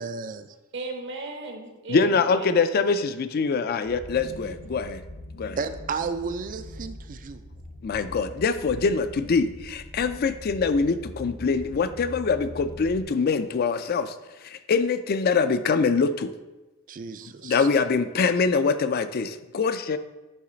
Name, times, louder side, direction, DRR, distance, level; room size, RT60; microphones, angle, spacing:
voice 1, 0.0-0.5 5.6-7.4 16.9-17.7, right 5 dB, 40° right, 11 dB, 0.3 m, -33 dB
voice 2, 0.7-2.6 4.4-4.6, right 3 dB, 60° right, 3 dB, 0.9 m, -36 dB
voice 3, 1.9-5.0 5.4-5.6 7.8-14.1 14.4-16.3 17.4-20.0, left 4 dB, 45° left, 12 dB, 0.4 m, -24 dB
sound 1, 3.8-13.0, left 1 dB, 90° left, 0.9 m, -42 dB
9.5 x 3.2 x 3.9 m, 1.1 s
head